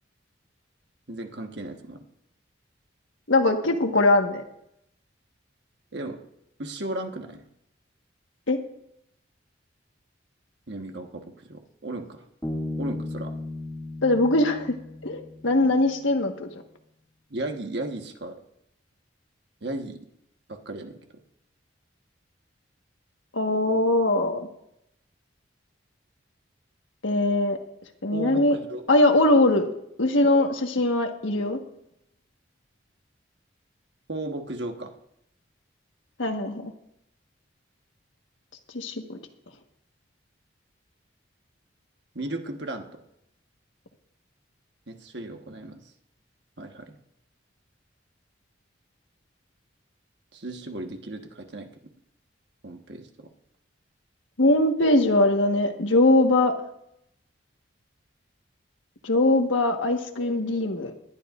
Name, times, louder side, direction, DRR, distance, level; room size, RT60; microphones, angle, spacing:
voice 1, 1.1-2.0 5.9-6.2 6.6-7.5 10.7-12.2 12.8-13.3 17.3-18.4 19.6-20.0 20.5-21.0 28.1-28.8 34.1-34.9 42.1-43.0 44.9-45.8 46.6-47.0 50.3-51.7 52.6-53.3, right 1 dB, 60° right, 4 dB, 1.4 m, -35 dB
voice 2, 3.3-4.4 8.5-8.6 14.0-14.8 15.0-16.5 23.3-24.5 27.0-27.6 28.0-28.6 28.9-29.7 30.0-31.6 36.2-36.7 38.7-39.2 54.4-56.5 59.0-60.9, left 2 dB, 85° left, 4 dB, 1.5 m, -21 dB
Bass guitar, 12.4-16.0, left 2 dB, 10° left, 2.3 m, -35 dB
20.0 x 12.0 x 2.5 m, 0.77 s
head